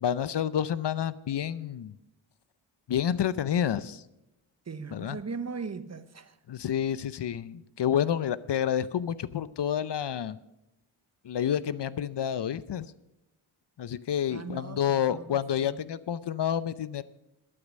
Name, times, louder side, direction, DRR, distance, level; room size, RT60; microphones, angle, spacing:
voice 1, 0.0-1.9 2.9-4.0 4.9-5.2 6.5-10.4 11.2-12.9 13.8-17.0, left 9 dB, 55° left, 0.7 m, -29 dB
voice 2, 4.7-6.3 14.3-15.8, right 5 dB, 30° right, 0.9 m, -39 dB
12.5 x 8.8 x 6.3 m
cardioid pair, 55°, 49 cm